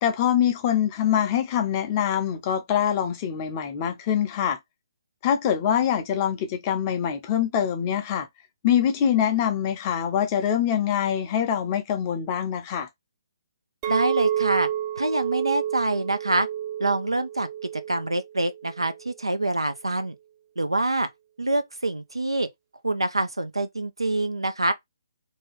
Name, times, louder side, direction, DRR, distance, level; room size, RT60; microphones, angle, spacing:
voice 1, 0.0-4.6 5.2-8.3 8.6-12.9, left 9 dB, 30° left, 0.7 m, -24 dB
Chink clink, 13.8-19.0, right 11 dB, 25° right, 0.4 m, -30 dB
voice 2, 13.9-14.7 15.0-16.5 16.8-17.5 17.7-20.1 20.6-21.1 21.4-22.5 22.8-24.7, right 2 dB, 90° right, 0.5 m, -25 dB
2.8 x 2.3 x 3.0 m
figure-of-eight pair, 140°, 3 cm